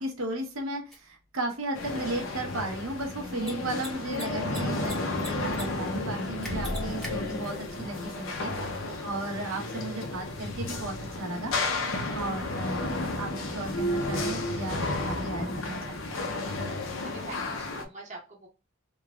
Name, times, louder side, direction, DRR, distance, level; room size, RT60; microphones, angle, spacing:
voice 1, 0.0-12.8 13.1-16.0, right 2 dB, 85° right, 2 dB, 0.9 m, -35 dB
Mechanisms, 0.9-1.0 3.3-3.5 3.8-3.9 4.1-4.9 5.2-5.6 5.9-6.0 6.4-7.1, equal, ahead, 0.7 m, -39 dB
sound 1, 1.7-17.8, left 2 dB, 75° left, 0.6 m, -32 dB
voice 2, 16.2-16.6 16.9-18.5, right 2 dB, 35° right, -2 dB, 1.0 m, -46 dB
3.1 x 2.3 x 2.2 m, 0.30 s
head